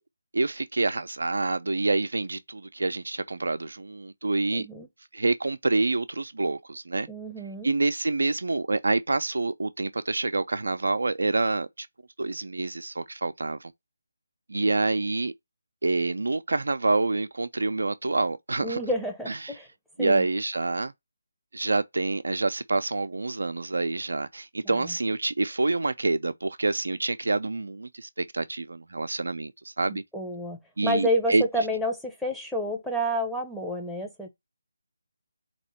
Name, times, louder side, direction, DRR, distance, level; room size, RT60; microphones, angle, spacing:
voice 1, 0.3-4.7 5.1-7.1 7.6-11.9 12.2-13.7 14.5-15.3 15.8-18.8 19.3-19.5 20.0-20.9 21.5-30.0 30.8-31.4, right 3 dB, 75° right, 0.5 m, -27 dB
voice 2, 4.5-4.9 7.1-7.7 18.6-19.7 20.0-20.3 24.6-24.9 29.9-34.3, equal, ahead, 0.8 m, -29 dB
4.2 x 3.0 x 4.1 m
figure-of-eight pair, 155°, 0 cm